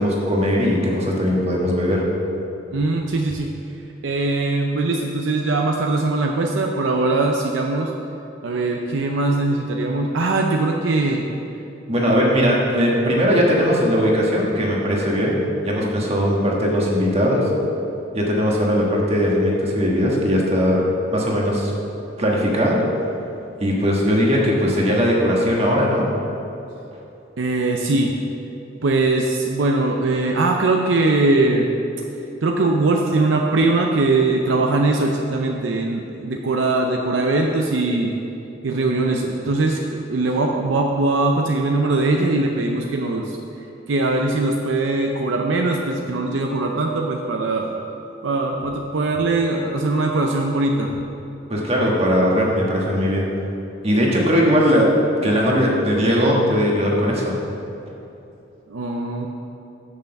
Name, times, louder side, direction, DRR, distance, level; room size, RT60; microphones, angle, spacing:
voice 1, 0.0-2.0 11.9-15.4 15.6-17.5 18.1-20.9 21.1-21.7 22.2-22.8 23.6-26.0 51.5-53.2 53.8-54.9 55.2-57.3, equal, 35° right, -3 dB, 1.3 m, -19 dB
voice 2, 2.7-3.5 4.0-7.9 8.4-11.2 27.4-28.1 28.8-31.7 32.4-38.1 38.6-43.4 43.9-47.7 48.2-50.9 58.7-59.3, right 2 dB, 70° right, 1 dB, 0.5 m, -21 dB
6.5 x 5.7 x 6.5 m, 2.9 s
head